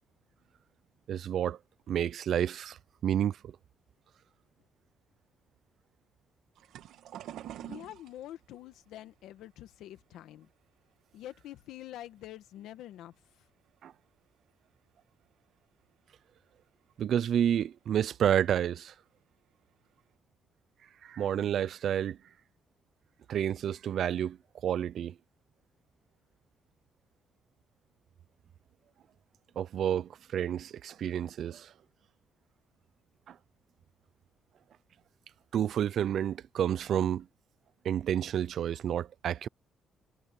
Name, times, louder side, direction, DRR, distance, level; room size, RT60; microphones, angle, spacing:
voice 1, 1.1-1.6 1.9-2.8 3.0-3.5 13.8-13.9 17.0-18.9 21.0-22.2 23.3-24.4 24.6-25.1 29.6-31.7 33.3-33.4 35.5-37.3 37.8-39.5, right 9 dB, 65° right, 0.6 m, -30 dB
sound 1, 6.5-11.7 12.0-12.9 13.4-13.7 14.0-14.1 15.3-15.4 15.9-16.0 16.6-16.7 16.9-17.2 18.4-18.6 19.2-19.3 19.7-20.1, right 12 dB, 85° right, 2.1 m, -48 dB
voice 2, 7.6-10.5 11.1-13.1, left 13 dB, 85° left, 1.7 m, -46 dB
cardioid pair, 90°, 0 cm